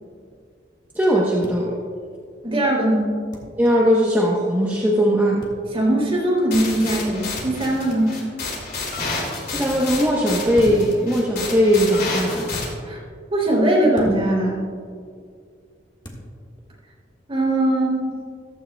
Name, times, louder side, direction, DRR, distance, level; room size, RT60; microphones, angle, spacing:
voice 1, 0.9-1.8 3.6-5.5 9.5-12.5, equal, 10° right, -4 dB, 1.0 m, -19 dB
sound 1, 1.4-1.6 3.3-3.5 5.4-5.6 7.3-7.7 8.9-9.1 10.5-11.0 12.5-12.7 13.9-14.2 16.0-16.2, equal, 25° left, 1.6 m, -35 dB
voice 2, 2.4-3.2 5.7-8.2 12.8-13.0 13.3-14.6 17.3-18.1, right 1 dB, 30° right, -3 dB, 3.1 m, -20 dB
sound 2, 6.5-12.6, left 3 dB, 55° left, 2.9 m, -30 dB
14.5 x 13.0 x 2.3 m, 2.2 s
head